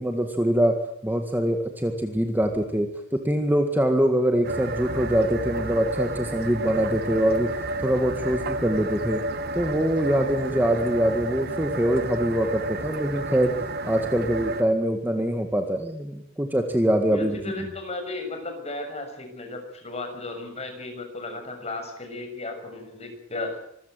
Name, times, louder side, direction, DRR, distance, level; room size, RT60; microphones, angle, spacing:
voice 1, 0.0-7.5 7.8-9.2 9.5-13.6 13.8-17.7, right 1 dB, 10° right, 5 dB, 1.9 m, -24 dB
sound 1, 4.4-14.6, right 2 dB, 55° right, 1.7 m, -31 dB
voice 2, 17.0-23.6, left 2 dB, 35° left, 4 dB, 6.7 m, -35 dB
25.5 x 15.0 x 9.2 m, 0.74 s
head